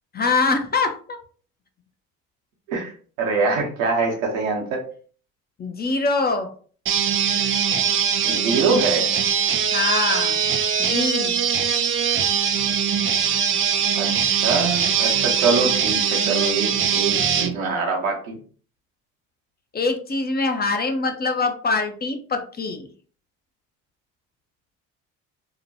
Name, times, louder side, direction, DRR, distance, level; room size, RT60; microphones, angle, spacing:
voice 1, 0.1-0.9 5.6-6.5 9.7-10.4 10.8-11.4 19.7-22.9, left 3 dB, 25° left, 6 dB, 0.5 m, -23 dB
voice 2, 2.7-4.8 8.2-9.1 13.9-18.4, right 4 dB, 90° right, 0 dB, 0.8 m, -24 dB
sound 1, 6.9-17.5, right 8 dB, 35° right, 0.4 m, -21 dB
2.8 x 2.1 x 2.7 m, 0.43 s
hypercardioid pair, 60°, 39 cm